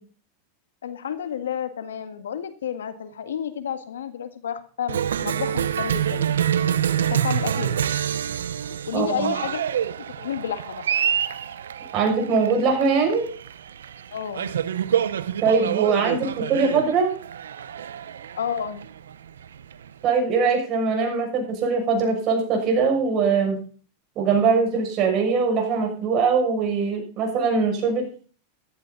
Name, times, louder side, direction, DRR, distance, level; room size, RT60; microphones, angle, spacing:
voice 1, 0.8-6.3 7.0-7.9 8.7-9.6 10.2-10.9 14.1-14.5 18.3-18.9, left 8 dB, 90° left, 10 dB, 1.8 m, -31 dB
Cheering, 4.9-20.1, right 9 dB, 90° right, 0.8 m, -27 dB
voice 2, 8.9-9.3 11.9-13.3 15.4-17.1 20.0-23.6 24.2-28.1, right 5 dB, 45° right, 2 dB, 6.5 m, -22 dB
14.5 x 14.0 x 4.1 m, 0.41 s
hypercardioid pair, 115°, 0 cm